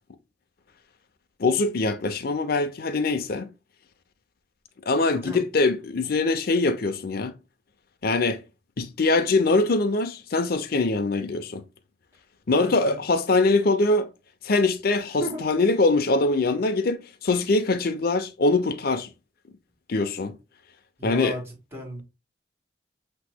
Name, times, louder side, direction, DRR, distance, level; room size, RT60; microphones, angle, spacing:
voice 1, 1.4-3.5 4.9-7.3 8.0-8.4 8.8-11.6 12.5-14.1 14.4-19.1 19.9-20.4 21.0-21.3, left 3 dB, 55° left, 0.6 m, -23 dB
voice 2, 5.1-5.4 12.5-13.0 15.2-15.4 21.0-21.4 21.7-22.0, equal, 15° right, 2.1 m, -34 dB
8.0 x 2.9 x 2.2 m
head